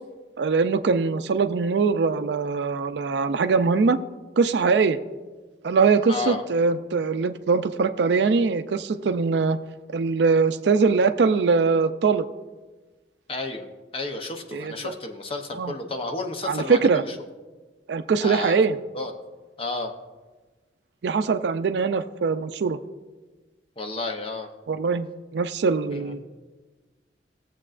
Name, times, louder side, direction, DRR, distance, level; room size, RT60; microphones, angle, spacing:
voice 1, 0.4-4.0 4.4-5.0 5.6-9.6 9.9-12.3 14.5-14.9 15.6-15.7 16.5-17.0 17.9-18.8 21.0-22.8 24.7-26.2, right 4 dB, 75° right, 9 dB, 0.4 m, -22 dB
voice 2, 6.1-6.4 13.3-13.7 13.9-17.1 18.2-18.6 18.9-19.1 19.6-19.9 23.8-24.5 25.9-26.1, left 3 dB, 30° left, 4 dB, 0.7 m, -31 dB
17.5 x 7.4 x 2.5 m, 1.3 s
head